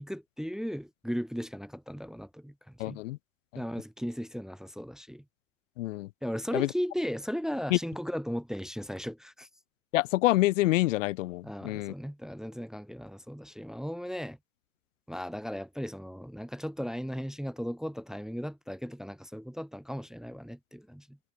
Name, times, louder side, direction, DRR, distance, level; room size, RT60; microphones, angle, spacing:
voice 1, 0.0-3.0 3.5-5.2 6.2-9.5 11.4-14.4 15.1-21.2, equal, ahead, 0.9 m, -36 dB
voice 2, 2.8-3.2 3.5-3.6 5.8-6.1 6.5-6.7 7.7-7.8 9.9-11.9, left 17 dB, 60° left, 0.8 m, -27 dB
figure-of-eight pair, 70°, 42 cm